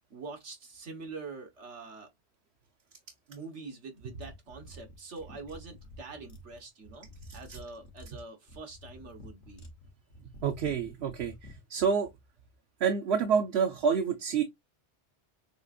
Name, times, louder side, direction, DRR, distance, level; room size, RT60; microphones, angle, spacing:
voice 1, 0.1-2.1 3.3-7.1 7.3-9.6, right 4 dB, 85° right, 1.6 m, -45 dB
sound 1, 4.2-11.6, left 1 dB, 85° left, 1.6 m, -50 dB
voice 2, 10.4-11.3 11.7-12.1 12.8-14.4, right 6 dB, 70° right, 0.9 m, -27 dB
6.6 x 2.5 x 2.6 m
omnidirectional pair, 1.1 m